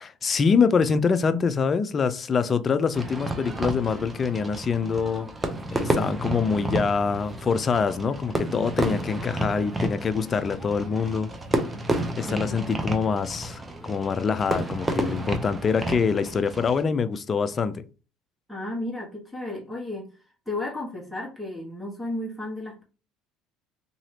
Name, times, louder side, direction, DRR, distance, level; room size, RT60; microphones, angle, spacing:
voice 1, 0.0-5.3 5.7-11.3 12.2-17.8, left 5 dB, 35° left, 0.4 m, -25 dB
Fireworks, 2.9-16.8, right 2 dB, 20° right, 0.7 m, -31 dB
voice 2, 12.2-12.6 18.5-20.1 20.5-22.8, left 1 dB, ahead, 1.3 m, -33 dB
2.9 x 2.7 x 2.8 m
hypercardioid pair, 75°, 0 cm